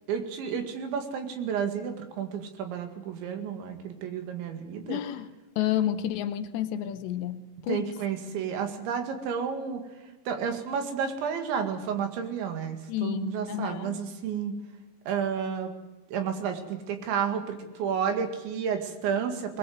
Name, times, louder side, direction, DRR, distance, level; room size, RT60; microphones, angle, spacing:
voice 1, 0.1-5.0 7.7-9.8 10.3-14.5 15.1-15.7 16.1-19.6, right 7 dB, 75° right, 5 dB, 4.3 m, -31 dB
voice 2, 4.9-5.3 5.6-7.9 12.9-14.0, left 11 dB, 75° left, 10 dB, 3.0 m, -30 dB
21.5 x 20.5 x 7.9 m, 1.1 s
omnidirectional pair, 5.3 m